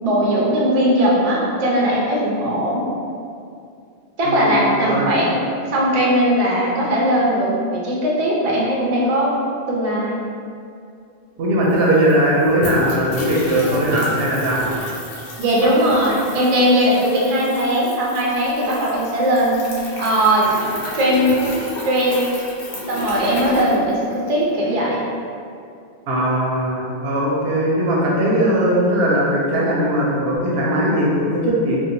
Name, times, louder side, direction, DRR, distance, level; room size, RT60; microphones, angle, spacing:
voice 1, 0.0-2.8 4.2-9.3 9.7-10.2 15.4-20.5 20.9-21.3 21.8-22.2 22.9-25.0, equal, 50° right, -5 dB, 0.5 m, -19 dB
voice 2, 4.8-5.1 11.4-14.7 26.1-31.8, right 1 dB, 70° right, -4 dB, 0.8 m, -19 dB
sound 1, 11.4-11.5 11.6-24.4, left 1 dB, 65° left, 0.7 m, -32 dB
2.8 x 2.2 x 2.6 m, 2.4 s
omnidirectional pair, 1.1 m